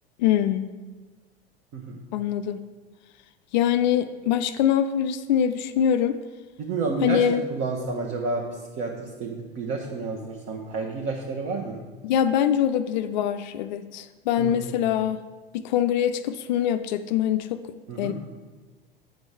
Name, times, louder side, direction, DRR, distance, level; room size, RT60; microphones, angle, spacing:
voice 1, 0.2-0.7 2.1-2.6 3.5-6.2 7.0-7.4 12.0-15.3 15.5-17.6 18.0-18.1, left 9 dB, 50° left, 11 dB, 0.4 m, -23 dB
voice 2, 6.6-8.4 8.8-11.8 14.4-14.7 17.9-18.1, right 3 dB, 40° right, 0 dB, 1.1 m, -30 dB
9.2 x 5.2 x 4.8 m, 1.3 s
figure-of-eight pair, 85°, 29 cm